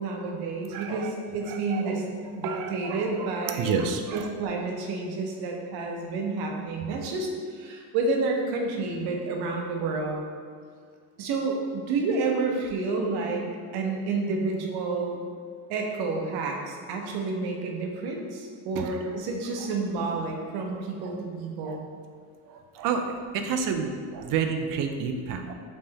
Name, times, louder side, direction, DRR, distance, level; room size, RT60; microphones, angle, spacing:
voice 1, 0.0-2.0 2.3-3.8 4.1-10.2 11.2-13.4 13.7-15.2 15.7-21.8, right 3 dB, 70° right, 1 dB, 0.8 m, -29 dB
voice 2, 0.7-1.1 1.5-2.0 2.4-3.1 3.6-4.3 18.8-18.9 21.0-21.1 21.6-21.8 22.5-23.0 23.3-25.5, right 6 dB, 55° right, 5 dB, 0.5 m, -30 dB
4.1 x 3.3 x 3.4 m, 2.1 s
cardioid pair, 125°, 40 cm